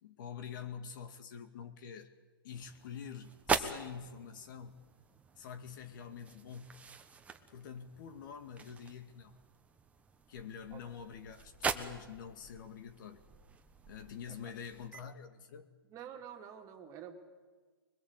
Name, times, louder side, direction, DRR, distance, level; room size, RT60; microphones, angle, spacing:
voice 1, 0.0-2.1 2.4-4.8 5.4-6.8 7.5-9.4 10.3-13.2 13.9-15.7, left 7 dB, 55° left, 8 dB, 2.2 m, -46 dB
sound 1, 2.5-15.0, right 5 dB, 10° right, 1.3 m, -42 dB
voice 2, 15.8-17.2, right 8 dB, 25° right, 4 dB, 2.7 m, -48 dB
23.0 x 21.5 x 8.2 m, 1.4 s
hypercardioid pair, 135°, 13 cm